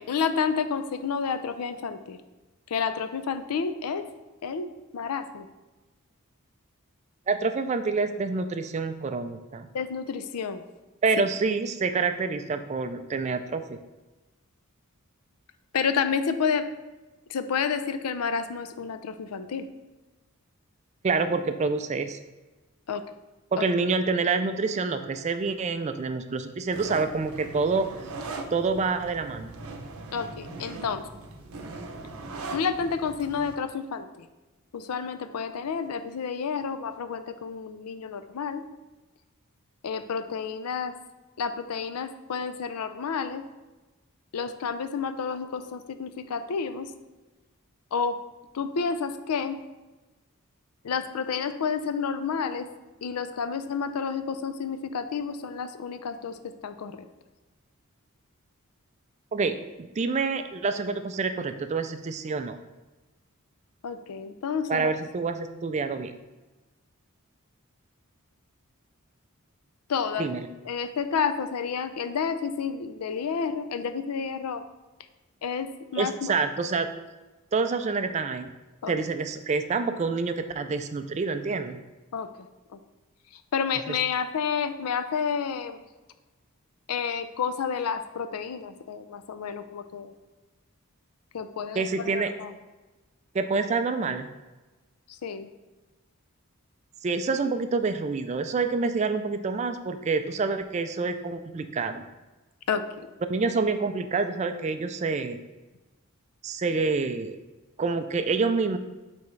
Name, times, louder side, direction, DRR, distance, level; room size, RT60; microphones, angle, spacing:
voice 1, 0.0-2.2 2.7-4.0 4.4-4.7 4.9-5.5 9.7-10.6 15.7-16.7 17.3-19.7 22.9-23.0 23.6-23.7 30.1-31.0 32.5-34.3 34.7-38.6 39.8-40.9 41.4-43.4 44.3-46.9 47.9-48.2 48.5-49.6 50.8-52.7 53.0-57.1 63.8-64.9 69.9-70.3 70.7-74.6 75.4-76.3 78.8-78.9 82.1-82.3 82.7-82.8 83.5-85.8 86.9-90.1 91.3-92.5 95.2-95.5 102.7-103.1, left 6 dB, 90° left, 10 dB, 0.4 m, -30 dB
voice 2, 7.3-9.7 11.0-13.8 21.0-22.2 23.5-27.9 28.5-29.6 59.3-62.6 64.7-66.1 70.2-70.5 76.0-76.9 77.5-78.5 78.9-81.8 91.7-92.3 93.3-94.3 97.0-102.0 103.3-105.4 106.4-107.4 107.8-108.8, right 4 dB, 30° right, 9 dB, 0.3 m, -27 dB
sound 1, 26.7-33.6, right 3 dB, 75° right, 0.6 m, -40 dB
8.7 x 3.5 x 3.2 m, 1.1 s
head